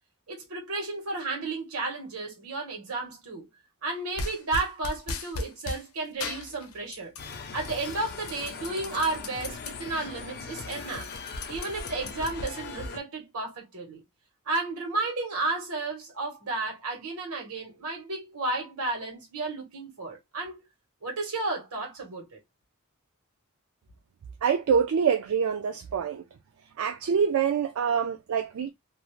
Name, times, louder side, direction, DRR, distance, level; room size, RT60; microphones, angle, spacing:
voice 1, 0.3-3.5 3.8-7.1 7.5-11.1 11.5-14.0 14.5-20.7 21.0-22.4, right 3 dB, 85° right, 1.2 m, -33 dB
sound 1, 4.2-5.8 6.2-7.3 7.6-9.7 10.1-10.2 10.5-12.9, left 3 dB, 85° left, 0.7 m, -37 dB
sound 2, 7.2-13.0, left 5 dB, 50° left, 0.4 m, -40 dB
voice 2, 24.4-26.2 26.8-28.7, right 7 dB, 70° right, 0.4 m, -25 dB
2.6 x 2.0 x 3.0 m
head